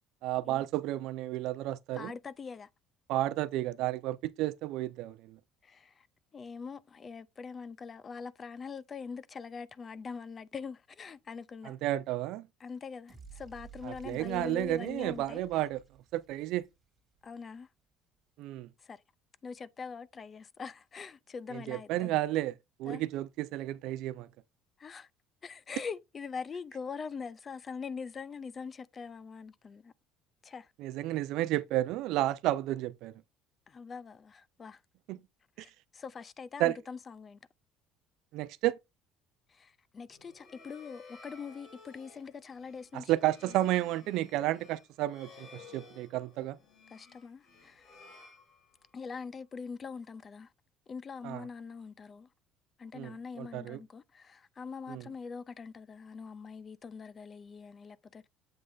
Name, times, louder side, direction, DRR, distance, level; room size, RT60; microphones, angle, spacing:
voice 1, 0.2-2.1 3.1-5.4 11.6-12.5 13.8-15.8 16.1-16.7 18.4-18.7 21.5-22.5 22.8-24.3 30.8-33.2 35.1-35.2 35.6-35.7 36.6-36.7 38.3-38.8 42.9-46.6 51.2-51.4 52.9-53.8 54.9-55.0, right 15 dB, 70° right, 0.5 m, -32 dB
voice 2, 1.9-2.7 5.6-6.1 6.3-11.8 12.6-15.6 17.2-17.7 18.8-19.0 19.4-22.1 22.9-23.0 24.8-25.1 25.4-29.9 30.4-30.7 33.7-34.8 35.6-37.4 39.5-43.6 46.9-48.0 48.9-50.5 50.9-52.3 52.8-58.3, left 5 dB, 30° left, 0.4 m, -43 dB
sound 1, 13.1-17.2, right 7 dB, 20° right, 2.1 m, -55 dB
sound 2, 40.1-49.1, left 4 dB, 55° left, 2.6 m, -55 dB
7.8 x 3.2 x 3.9 m
cardioid pair, 120°, 0 cm